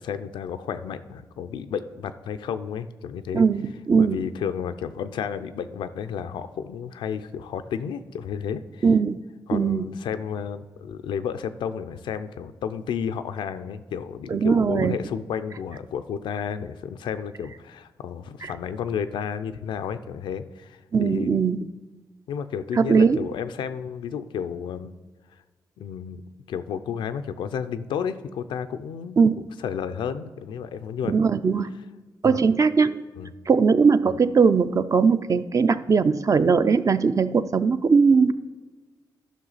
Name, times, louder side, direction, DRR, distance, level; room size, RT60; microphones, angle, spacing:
voice 1, 0.0-3.4 4.0-8.9 9.5-21.4 22.3-24.9 25.8-26.2 26.5-29.2 29.6-31.1 32.2-32.4 33.2-33.3, left 7 dB, 90° left, 10 dB, 0.4 m, -32 dB
voice 2, 3.3-4.3 8.8-9.2 9.5-9.9 14.3-15.0 18.4-18.5 20.9-21.6 22.8-23.3 29.2-29.5 31.0-31.7 32.2-33.0 33.5-38.3, right 5 dB, 45° right, 12 dB, 0.4 m, -20 dB
12.5 x 5.6 x 4.0 m, 1.3 s
cardioid pair, 60°, 8 cm